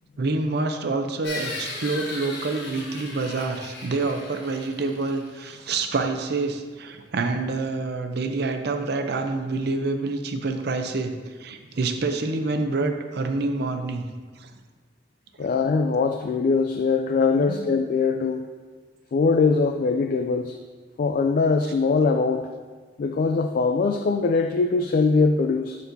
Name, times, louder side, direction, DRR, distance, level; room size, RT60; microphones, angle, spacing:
voice 1, 0.2-11.1 11.4-14.1 14.4-14.5 17.3-17.6, right 3 dB, 60° right, 6 dB, 0.6 m, -27 dB
sound 1, 1.2-6.0, left 2 dB, 65° left, 1.3 m, -37 dB
voice 2, 15.4-18.5 19.1-20.6 21.0-22.5 23.0-25.8, left 4 dB, 50° left, 6 dB, 0.3 m, -22 dB
11.5 x 4.1 x 2.7 m, 1.4 s
head